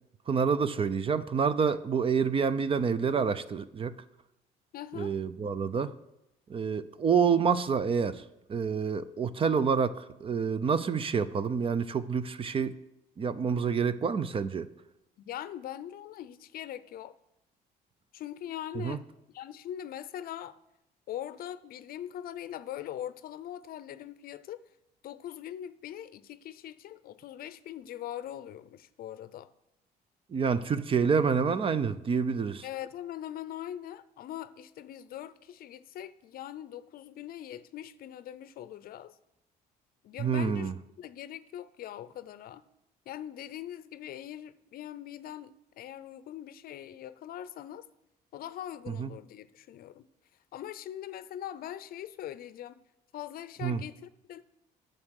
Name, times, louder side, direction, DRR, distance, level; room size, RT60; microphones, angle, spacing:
voice 1, 0.3-3.9 5.0-5.9 6.5-8.2 8.5-9.9 10.2-12.7 13.2-14.7 18.8-19.0 30.3-32.6 40.2-40.7 49.0-49.1 53.6-53.8, right 6 dB, 30° right, 15 dB, 0.5 m, -27 dB
voice 2, 4.7-5.1 9.4-9.7 15.2-17.1 18.1-19.0 19.3-20.6 21.1-24.6 25.0-29.5 32.6-39.2 40.0-40.7 41.0-42.6 43.1-47.9 48.3-50.1 50.5-52.8 53.1-54.4, left 11 dB, 60° left, 15 dB, 0.6 m, -41 dB
9.6 x 6.6 x 6.4 m, 0.87 s
cardioid pair, 110°, 17 cm